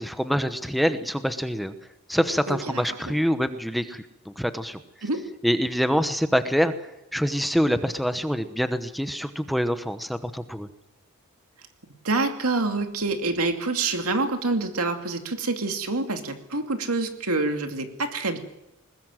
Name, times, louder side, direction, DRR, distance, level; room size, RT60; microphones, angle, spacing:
voice 1, 0.0-1.7 2.1-4.8 5.4-6.7 7.1-10.7, equal, ahead, 10 dB, 1.0 m, -25 dB
voice 2, 2.5-3.2 5.0-5.3 12.0-18.4, right 3 dB, 75° right, 6 dB, 2.6 m, -27 dB
21.0 x 20.5 x 7.6 m, 0.89 s
head